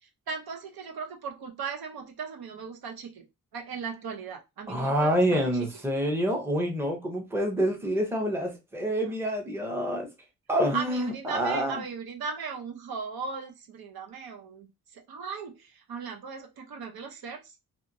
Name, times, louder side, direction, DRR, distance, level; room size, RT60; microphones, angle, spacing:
voice 1, 0.0-3.3 3.5-5.5 9.0-9.1 10.7-17.5, right 5 dB, 85° right, 0.7 m, -38 dB
voice 2, 4.7-10.1 10.5-11.8, equal, 5° right, 0.6 m, -27 dB
2.8 x 2.5 x 2.5 m
wide cardioid pair, 175°, 36 cm